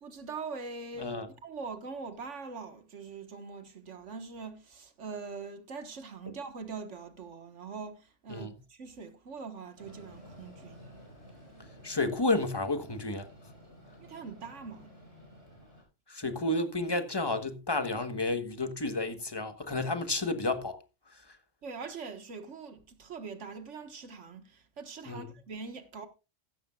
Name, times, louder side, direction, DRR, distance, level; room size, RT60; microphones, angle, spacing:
voice 1, 0.0-10.8 14.0-14.9 21.6-26.1, right 4 dB, 85° right, 1.8 m, -43 dB
Train, 9.8-15.8, equal, 70° left, 5.1 m, -53 dB
voice 2, 11.8-13.3 16.1-20.8 21.1-21.2 25.1-25.3, left 2 dB, 20° left, 1.2 m, -31 dB
15.0 x 13.0 x 2.4 m
omnidirectional pair, 1.2 m